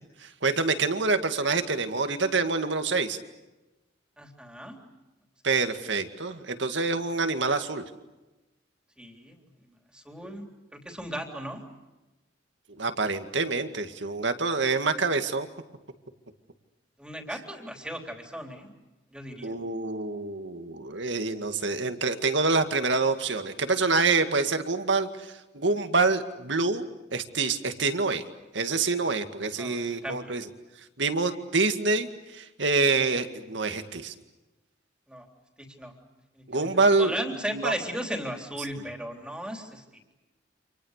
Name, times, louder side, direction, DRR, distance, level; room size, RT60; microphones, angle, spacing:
voice 1, 0.2-3.2 5.4-7.8 12.7-15.5 19.4-26.8 27.1-28.2 28.5-30.5 31.0-34.1 36.5-37.2 37.5-37.7, right 3 dB, 70° right, 7 dB, 2.1 m, -26 dB
voice 2, 4.2-4.8 9.0-9.4 9.9-10.5 10.7-11.6 17.0-18.7 19.1-19.5 29.6-30.4 35.1-35.3 35.6-35.9 36.4-36.7 37.0-39.8, equal, 5° right, 3 dB, 3.5 m, -36 dB
30.0 x 27.5 x 6.6 m, 1.1 s
head